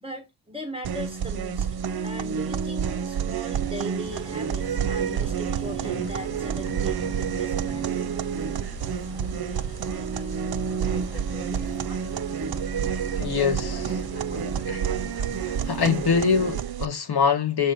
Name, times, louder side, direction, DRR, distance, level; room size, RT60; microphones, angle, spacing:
voice 1, 0.0-1.7 2.0-8.1, right 1 dB, 15° right, 1.1 m, -38 dB
sound 1, 0.8-16.9, right 8 dB, 65° right, 0.7 m, -29 dB
sound 2, 4.0-16.6, left 2 dB, 35° left, 2.3 m, -41 dB
voice 2, 13.2-14.0 14.7-14.8 15.4-17.7, left 6 dB, 70° left, 1.5 m, -24 dB
7.4 x 2.8 x 5.2 m
wide cardioid pair, 120°, 40 cm